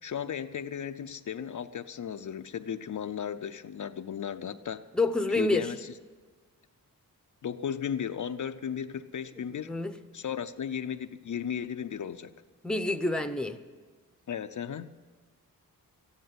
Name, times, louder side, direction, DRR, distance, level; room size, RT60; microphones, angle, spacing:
voice 1, 0.0-4.8 5.3-5.9 7.4-9.7 10.1-12.3 14.3-14.9, left 8 dB, 55° left, 9 dB, 0.6 m, -35 dB
voice 2, 4.9-5.7 9.7-9.9 12.6-13.6, left 2 dB, ahead, 8 dB, 0.8 m, -28 dB
14.0 x 10.5 x 9.3 m, 1.4 s
wide cardioid pair, 115°, 36 cm